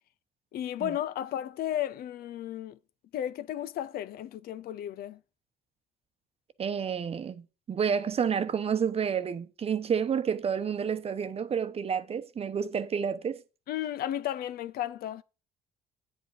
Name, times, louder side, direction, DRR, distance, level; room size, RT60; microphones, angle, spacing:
voice 1, 0.5-2.8 3.1-5.2 13.7-15.2, left 11 dB, 65° left, 0.6 m, -34 dB
voice 2, 6.6-13.4, right 7 dB, 35° right, 0.9 m, -30 dB
9.3 x 8.0 x 4.8 m
cardioid pair, 110°, 17 cm